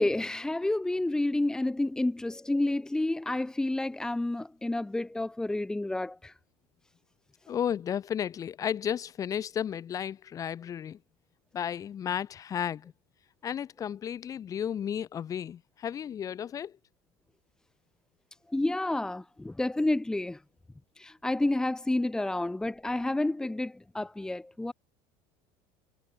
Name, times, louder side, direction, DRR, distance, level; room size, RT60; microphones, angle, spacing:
voice 1, 0.0-6.3 18.5-20.4 21.0-24.7, left 2 dB, 5° left, 3.4 m, -30 dB
voice 2, 7.5-11.0 11.5-12.9 13.4-16.8, left 9 dB, 25° left, 5.8 m, -33 dB
cardioid pair, 175°, 13 cm